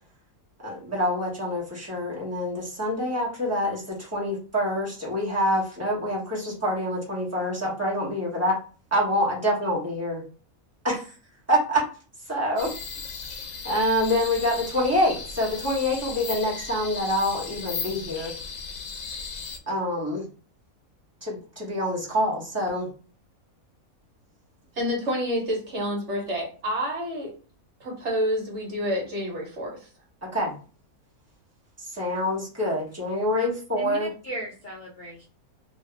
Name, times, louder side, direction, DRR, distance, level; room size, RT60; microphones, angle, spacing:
voice 1, 0.6-8.6 8.9-10.2 10.8-11.1 11.5-11.9 12.3-12.7 13.6-18.4 19.7-20.2 21.2-22.9 30.2-30.5 31.8-34.1, equal, 10° right, -5 dB, 1.2 m, -26 dB
sound 1, 12.6-19.6, left 5 dB, 70° left, 1.0 m, -36 dB
voice 2, 24.7-27.3 27.8-29.9, equal, 55° right, -1 dB, 1.4 m, -28 dB
voice 3, 33.8-35.3, equal, 45° left, -3 dB, 0.6 m, -36 dB
2.9 x 2.6 x 3.3 m, 0.38 s
omnidirectional pair, 1.5 m